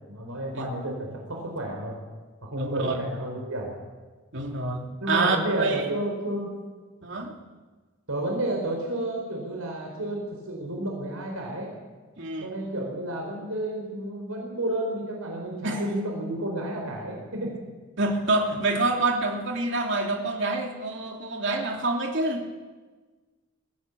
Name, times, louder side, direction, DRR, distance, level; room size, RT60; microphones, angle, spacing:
voice 1, 0.1-2.0 2.4-3.7 5.0-6.5 8.1-11.7 12.4-17.5, right 1 dB, 80° right, 0 dB, 4.9 m, -31 dB
voice 2, 2.5-3.0 4.3-5.9 7.0-7.3 12.2-12.5 15.6-15.8 18.0-22.5, right 2 dB, 55° right, 1 dB, 3.0 m, -27 dB
22.0 x 16.5 x 8.5 m, 1.3 s
head